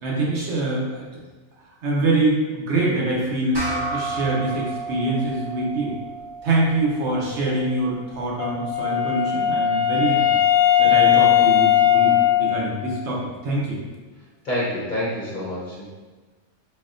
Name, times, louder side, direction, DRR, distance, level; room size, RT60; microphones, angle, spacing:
voice 1, 0.0-1.1 1.8-5.9 6.4-10.2 10.8-13.8, right 2 dB, 60° right, -4 dB, 1.0 m, -24 dB
sound 1, 3.5-8.3, right 3 dB, 25° right, 0.5 m, -33 dB
Wind instrument woodwind instrument, 8.4-13.2, left 11 dB, 75° left, 0.9 m, -19 dB
voice 2, 14.4-15.8, left 1 dB, 45° left, -8 dB, 0.8 m, -27 dB
4.1 x 2.8 x 2.5 m, 1.3 s
omnidirectional pair, 1.4 m